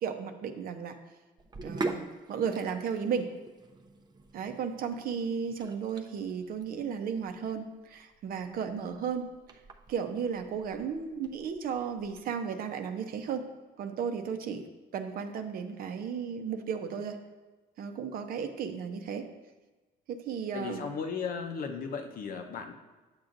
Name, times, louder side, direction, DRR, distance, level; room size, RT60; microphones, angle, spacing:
voice 1, 0.0-1.0 1.6-3.3 4.3-9.3 9.9-13.4 13.8-14.6 14.9-17.2 17.8-19.3 20.1-20.8, right 7 dB, 60° right, 7 dB, 0.7 m, -34 dB
Sink (filling or washing), 1.4-12.2, right 3 dB, 25° right, 0.6 m, -43 dB
voice 2, 20.5-22.7, left 5 dB, 55° left, 5 dB, 0.8 m, -36 dB
8.8 x 7.2 x 2.6 m, 1.2 s
cardioid pair, 110°, 17 cm